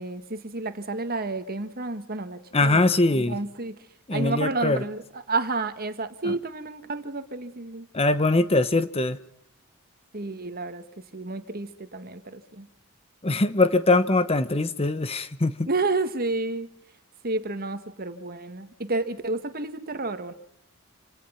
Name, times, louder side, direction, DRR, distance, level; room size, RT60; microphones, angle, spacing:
voice 1, 0.0-3.7 4.1-5.0 5.3-7.9 10.1-10.8 11.1-12.7 15.7-16.7 17.2-20.3, right 3 dB, 45° right, 9 dB, 1.8 m, -30 dB
voice 2, 2.5-3.4 4.1-4.8 6.2-6.4 7.9-9.2 13.2-15.7, left 2 dB, 25° left, 13 dB, 0.9 m, -22 dB
28.0 x 17.0 x 5.8 m, 0.74 s
head